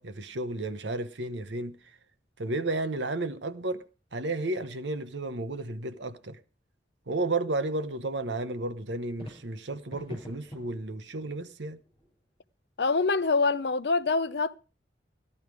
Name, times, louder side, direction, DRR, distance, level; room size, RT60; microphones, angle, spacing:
voice 1, 0.0-1.8 2.4-3.8 4.1-6.4 7.1-11.8, right 2 dB, 75° right, 1.0 m, -32 dB
sound 1, 9.2-12.4, equal, 30° left, 6.1 m, -48 dB
voice 2, 12.8-14.6, left 4 dB, 65° left, 0.6 m, -25 dB
14.0 x 11.0 x 4.8 m
head